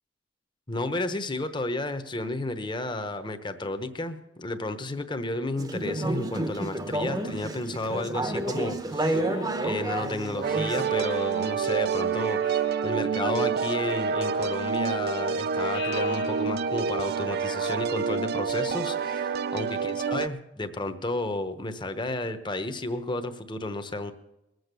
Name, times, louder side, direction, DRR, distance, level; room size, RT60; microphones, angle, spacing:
voice 1, 0.7-9.2 9.6-24.1, left 2 dB, 25° left, 9 dB, 1.0 m, -32 dB
Conversation / Chatter, 5.6-11.0, right 1 dB, 20° right, 0.9 m, -30 dB
Speech synthesizer, 9.0-10.1 10.8-11.8 12.4-13.1 14.1-15.0 15.7-16.9, left 8 dB, 65° left, 1.3 m, -44 dB
sound 1, 10.4-20.3, right 5 dB, 60° right, 0.5 m, -27 dB
21.0 x 7.9 x 6.8 m, 0.92 s
head